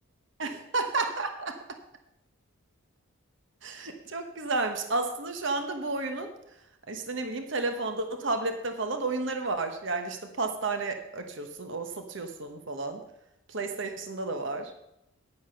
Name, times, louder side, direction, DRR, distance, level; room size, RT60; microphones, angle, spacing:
voice 1, 0.4-1.6 3.6-6.3 6.9-13.0 13.5-14.7, right 3 dB, 55° right, 6 dB, 1.1 m, -32 dB
10.0 x 9.6 x 5.7 m, 0.83 s
head